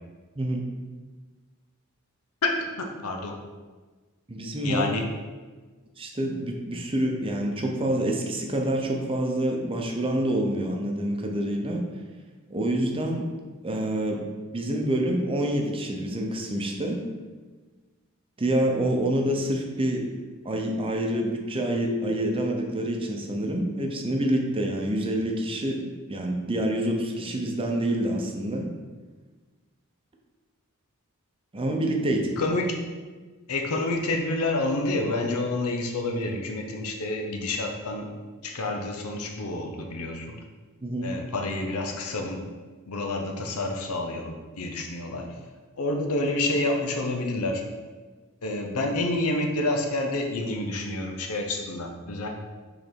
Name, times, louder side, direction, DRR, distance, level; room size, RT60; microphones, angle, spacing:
voice 1, 0.4-0.7 4.3-4.9 6.0-11.9 12.5-13.3 13.6-17.1 18.4-20.1 20.4-25.8 26.1-28.7 31.5-32.4 40.8-41.1, right 1 dB, 25° right, 1 dB, 0.7 m, -27 dB
voice 2, 2.4-3.4 4.6-5.1 32.4-32.8 33.5-38.1 38.4-40.4 41.0-42.4 42.9-45.4 45.8-47.6 48.4-52.3, left 2 dB, 85° left, 3 dB, 0.8 m, -28 dB
5.3 x 4.0 x 4.5 m, 1.4 s
head